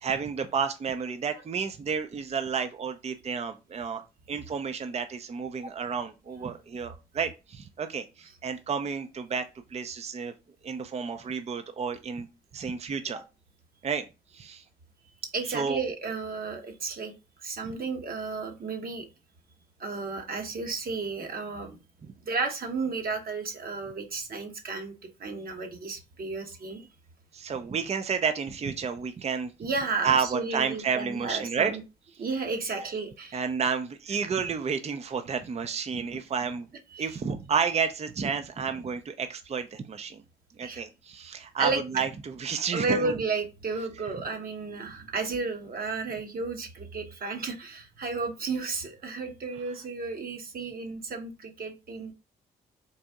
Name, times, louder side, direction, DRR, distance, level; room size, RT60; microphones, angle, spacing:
voice 1, 0.0-4.0 4.3-9.4 9.7-10.3 10.6-12.3 12.5-13.2 13.8-14.0 14.3-14.6 15.5-15.8 17.6-17.7 22.0-22.1 27.3-29.5 30.0-31.7 33.3-36.7 37.0-40.2 40.6-43.1, right 6 dB, 35° right, 8 dB, 0.5 m, -31 dB
voice 2, 15.2-17.1 17.4-19.1 19.8-21.8 22.2-24.9 25.2-26.8 29.6-31.8 32.2-33.4 36.0-36.1 36.9-37.1 40.6-40.8 41.6-42.0 42.7-52.1, right 4 dB, 50° right, 4 dB, 1.1 m, -33 dB
4.0 x 2.6 x 3.5 m, 0.28 s
supercardioid pair, 55°, 19 cm